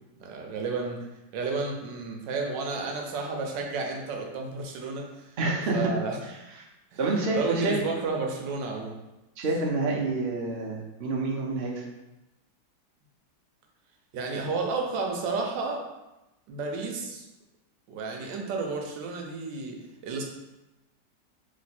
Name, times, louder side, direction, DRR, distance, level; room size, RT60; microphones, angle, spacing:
voice 1, 0.2-1.1 1.3-5.4 5.7-6.2 6.9-9.0 14.1-15.8 16.5-17.2 17.9-20.2, right 4 dB, 85° right, 2 dB, 1.4 m, -32 dB
voice 2, 5.4-5.9 6.2-6.4 7.0-7.8 9.4-11.8, right 2 dB, 55° right, -1 dB, 0.7 m, -28 dB
3.2 x 3.1 x 4.1 m, 0.99 s
omnidirectional pair, 1.9 m